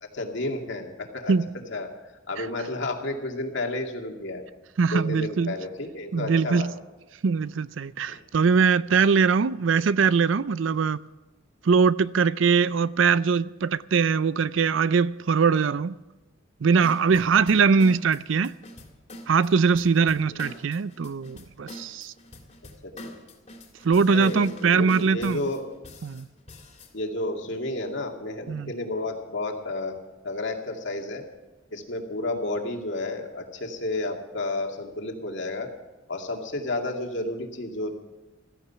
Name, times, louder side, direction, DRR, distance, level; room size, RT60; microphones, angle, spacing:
voice 1, 0.0-1.9 2.3-4.4 4.9-6.7 8.1-8.2 22.8-23.1 24.1-25.7 26.9-30.0 30.2-31.2 31.7-35.7 36.1-37.9, left 2 dB, 65° left, 2.2 m, -31 dB
voice 2, 4.8-5.5 6.1-6.7 7.2-11.0 11.6-15.9 16.6-18.5 19.3-22.1 23.8-25.4 26.0-26.3 28.5-28.7, right 5 dB, 70° right, 0.5 m, -22 dB
sound 1, 16.8-26.9, left 1 dB, 35° left, 2.7 m, -44 dB
15.5 x 14.5 x 5.7 m
head